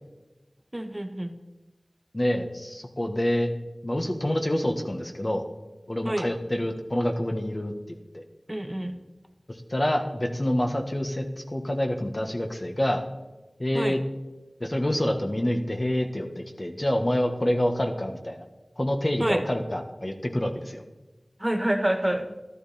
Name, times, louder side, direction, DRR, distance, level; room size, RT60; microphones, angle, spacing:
voice 1, 0.7-1.3 6.0-6.3 8.5-9.0 13.7-14.0 19.2-19.4 21.4-22.3, right 1 dB, 25° right, 6 dB, 1.2 m, -27 dB
voice 2, 2.1-3.5 3.8-5.4 5.9-7.7 8.1-8.2 9.7-11.3 11.5-13.0 13.6-14.0 14.6-18.4 18.8-20.8, left 1 dB, 40° left, 4 dB, 1.6 m, -27 dB
13.0 x 12.5 x 4.4 m, 1.1 s
wide cardioid pair, 40°, 0 cm